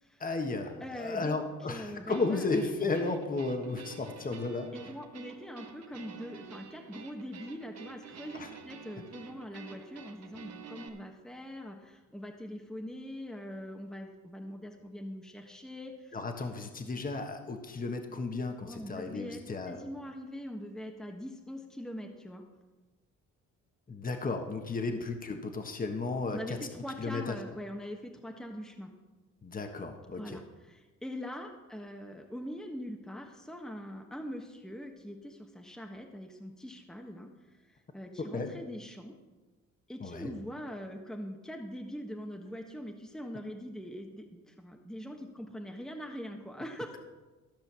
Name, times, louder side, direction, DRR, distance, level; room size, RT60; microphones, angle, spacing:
voice 1, 0.2-4.7 8.3-8.5 16.1-19.8 23.9-26.6 27.0-27.3 29.4-30.4 38.2-38.5 40.0-40.3, left 3 dB, 30° left, 5 dB, 1.4 m, -34 dB
voice 2, 0.8-1.4 1.7-2.5 4.7-16.2 18.6-22.4 26.3-28.9 30.1-39.1 39.9-47.0, equal, ahead, 2 dB, 1.2 m, -42 dB
sound 1, 2.1-10.9, right 6 dB, 60° right, 1.3 m, -49 dB
14.0 x 5.6 x 6.9 m, 1.2 s
cardioid pair, 90°, 30 cm